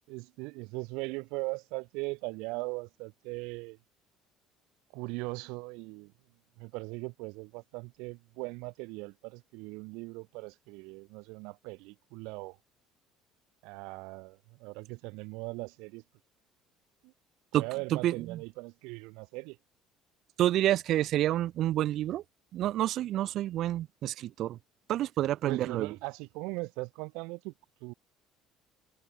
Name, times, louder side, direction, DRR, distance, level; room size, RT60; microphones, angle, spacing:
voice 1, 0.1-3.8 4.9-6.1 6.6-12.6 13.6-16.0 17.0-17.1 17.5-19.6 25.4-27.5 27.8-27.9, right 27 dB, 90° right, 1.9 m, -39 dB
voice 2, 17.9-18.4 20.4-22.2 22.5-24.6 24.9-25.9, right 13 dB, 50° right, 0.3 m, -28 dB
cardioid pair, 155°, 0 cm